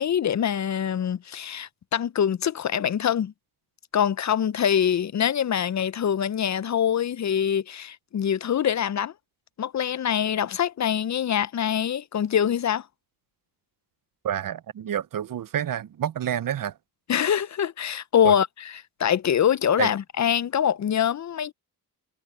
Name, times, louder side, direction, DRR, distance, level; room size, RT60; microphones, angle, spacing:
voice 1, 0.0-3.3 3.9-9.1 9.6-12.9 17.1-21.5, left 9 dB, 45° left, 0.5 m, -24 dB
voice 2, 14.2-16.7 18.2-18.3 19.8-19.9, right 10 dB, 60° right, 0.6 m, -28 dB
cardioid pair, 90°, 39 cm